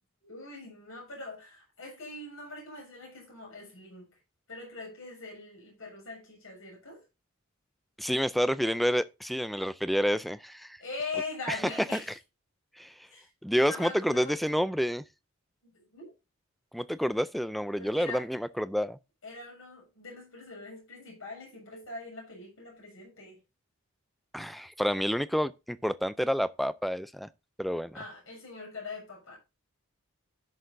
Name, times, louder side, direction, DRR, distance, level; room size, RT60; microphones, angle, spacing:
voice 1, 0.2-4.1 4.5-7.0 10.8-12.1 13.1-14.3 15.7-16.1 17.8-18.2 19.2-23.4 27.9-29.4, left 3 dB, 70° left, 6.9 m, -42 dB
voice 2, 8.0-10.8 11.5-12.0 12.8-12.9 13.4-15.0 16.7-19.0 24.3-27.3 27.6-28.0, equal, ahead, 0.4 m, -29 dB
15.5 x 6.5 x 2.6 m
head